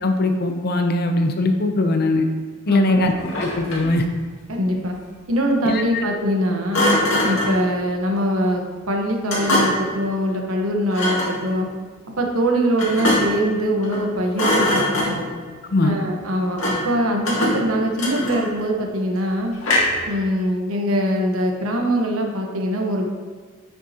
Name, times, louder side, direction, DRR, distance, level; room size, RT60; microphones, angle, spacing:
voice 1, 0.0-2.3 2.7-3.1 3.4-4.0 5.6-6.0 15.7-15.9, left 2 dB, 50° left, 5 dB, 0.6 m, -20 dB
voice 2, 2.7-3.0 4.5-5.0 5.3-6.8 7.2-11.7 12.2-15.3 15.8-19.5 20.1-23.1, equal, 85° right, 1 dB, 1.1 m, -22 dB
Thump thud, 3.2-4.0 6.7-7.6 9.3-9.9 10.9-11.4 12.8-13.5 13.8-14.1 14.3-15.4 16.6-16.9 17.2-18.6 19.6-20.1, left 1 dB, 75° left, 2.1 m, -22 dB
9.2 x 6.1 x 2.8 m, 1.5 s
head